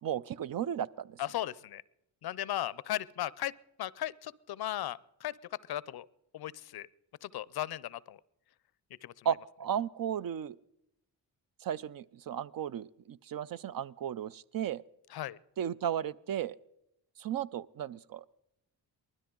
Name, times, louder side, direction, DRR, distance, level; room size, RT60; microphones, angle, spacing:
voice 1, 0.0-1.2 9.2-10.6 11.6-14.8 15.6-16.6 17.2-18.2, right 9 dB, 50° right, 17 dB, 0.5 m, -35 dB
voice 2, 1.2-1.8 2.2-3.5 3.8-5.3 5.7-6.1 6.3-6.9 7.2-8.2 9.0-9.3 15.1-15.4, left 13 dB, 60° left, 21 dB, 0.5 m, -36 dB
20.0 x 13.0 x 3.8 m, 0.81 s
cardioid pair, 60°, 44 cm